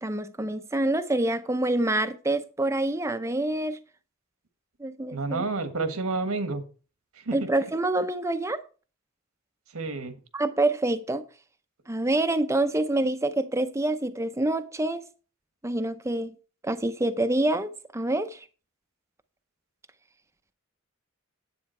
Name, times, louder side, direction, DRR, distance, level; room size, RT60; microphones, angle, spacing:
voice 1, 0.0-3.8 4.8-5.4 7.3-8.6 10.3-11.2 11.9-15.0 15.6-16.4 16.6-18.4, right 2 dB, 15° right, 0.6 m, -26 dB
voice 2, 5.1-6.6 7.3-7.4 9.7-10.1, right 3 dB, 85° right, 1.4 m, -29 dB
9.6 x 8.4 x 4.3 m
head